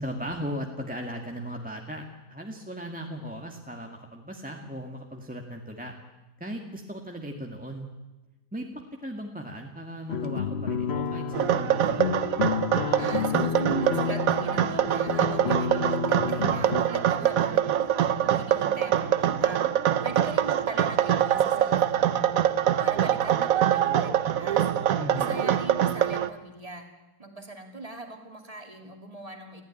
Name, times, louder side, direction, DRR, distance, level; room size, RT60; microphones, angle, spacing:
voice 1, 0.0-5.9 6.4-7.9 8.5-12.0 25.0-25.4, equal, 5° right, 2 dB, 1.6 m, -37 dB
sound 1, 10.1-16.8, left 7 dB, 45° left, 1.1 m, -30 dB
sound 2, 11.3-26.3, right 10 dB, 60° right, 1.2 m, -24 dB
voice 2, 13.0-19.6 20.0-24.6 25.1-26.9 27.2-29.6, right 2 dB, 20° right, 4 dB, 2.8 m, -40 dB
21.5 x 15.5 x 9.9 m, 1.1 s
omnidirectional pair, 1.7 m